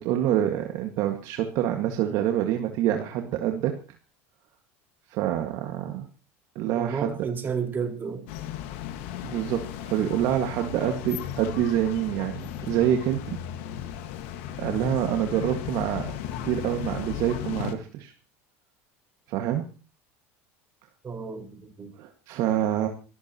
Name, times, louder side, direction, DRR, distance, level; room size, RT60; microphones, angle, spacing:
voice 1, 0.0-3.7 5.1-6.1 6.6-7.2 9.2-13.4 14.6-16.0 16.4-18.1 19.3-19.6 22.0-22.9, right 11 dB, 60° right, 4 dB, 1.9 m, -26 dB
voice 2, 6.8-8.2 21.0-21.9, right 6 dB, 30° right, 3 dB, 4.5 m, -32 dB
sound 1, 8.3-17.7, left 10 dB, 70° left, 1.7 m, -35 dB
26.0 x 14.0 x 3.0 m, 0.36 s
hypercardioid pair, 90°, 7 cm